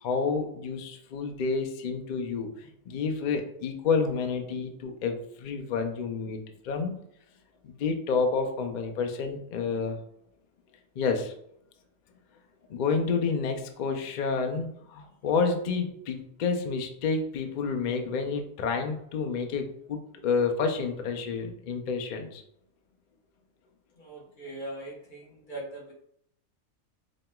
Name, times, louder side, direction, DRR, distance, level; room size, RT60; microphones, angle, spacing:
voice 1, 0.0-6.9 7.6-10.0 11.0-11.3 12.7-22.4, left 5 dB, 65° left, 4 dB, 0.4 m, -29 dB
voice 2, 24.0-25.2 25.5-25.9, right 1 dB, 40° left, -2 dB, 1.2 m, -39 dB
5.2 x 2.9 x 2.2 m, 0.74 s
omnidirectional pair, 1.4 m